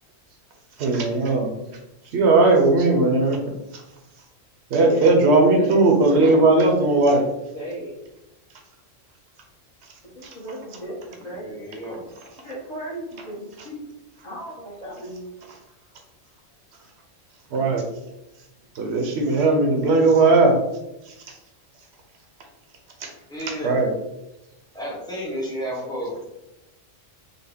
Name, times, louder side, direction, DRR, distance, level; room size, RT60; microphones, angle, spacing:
voice 1, 0.8-1.5 2.1-3.4 4.7-7.2 10.2-10.3 17.5-17.8 18.8-20.5 23.0-23.1 23.6-23.9, right 3 dB, 60° right, 2 dB, 0.9 m, -17 dB
voice 2, 4.8-6.0 6.4-7.3 7.5-8.0 10.2-11.6 12.4-13.9 14.2-15.3, equal, 35° left, -7 dB, 0.9 m, -35 dB
voice 3, 11.4-12.1 23.3-23.8 24.7-26.1, equal, 5° left, -5 dB, 0.7 m, -31 dB
3.9 x 2.1 x 3.4 m, 0.92 s
omnidirectional pair, 1.4 m